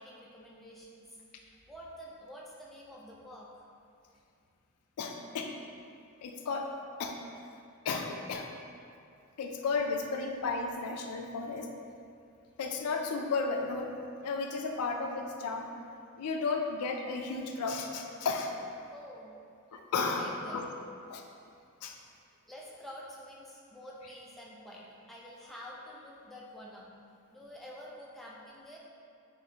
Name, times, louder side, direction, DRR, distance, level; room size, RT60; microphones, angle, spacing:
voice 1, 0.0-3.7 18.9-19.3 20.1-20.7 22.5-26.9 27.3-28.8, equal, ahead, -5 dB, 0.4 m, -48 dB
voice 2, 5.0-5.5 6.2-6.7 7.0-7.2 7.9-8.5 9.4-11.7 12.6-13.9 14.2-15.7 16.2-18.5 19.7-20.6 21.1-21.2 21.8-21.9, left 4 dB, 70° left, 3 dB, 0.4 m, -33 dB
4.1 x 3.1 x 2.8 m, 2.4 s
head